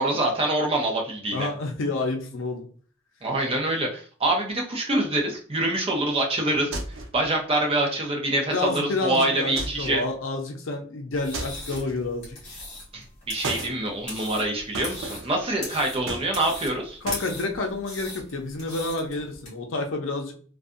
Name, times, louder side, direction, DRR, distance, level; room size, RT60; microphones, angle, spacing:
voice 1, 0.0-1.5 3.2-6.8 7.1-10.0 12.9-17.0, right 1 dB, 30° right, 1 dB, 0.5 m, -25 dB
voice 2, 1.3-2.7 6.4-6.6 8.5-12.4 17.0-20.3, left 3 dB, 70° left, 3 dB, 0.6 m, -29 dB
sound 1, 6.7-7.2 9.6-10.0 11.3-12.1 13.4-13.8 14.7-15.4 16.1-16.7 17.1-17.3, right 2 dB, 75° right, 0.5 m, -34 dB
sound 2, 11.1-19.5, left 2 dB, 35° left, 1.3 m, -40 dB
2.6 x 2.3 x 2.4 m, 0.43 s
head